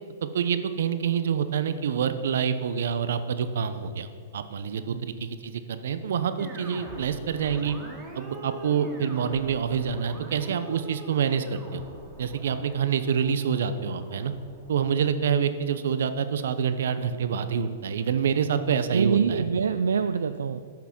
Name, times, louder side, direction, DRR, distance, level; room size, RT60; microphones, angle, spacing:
voice 1, 0.2-4.1 4.3-7.8 8.1-11.8 12.2-14.3 14.7-19.4, right 7 dB, 70° right, 11 dB, 0.8 m, -27 dB
sound 1, 6.4-15.7, right 1 dB, 15° right, 2.2 m, -44 dB
voice 2, 18.9-20.7, right 6 dB, 90° right, 11 dB, 0.3 m, -25 dB
10.5 x 6.1 x 7.1 m, 2.2 s
hypercardioid pair, 135°, 0 cm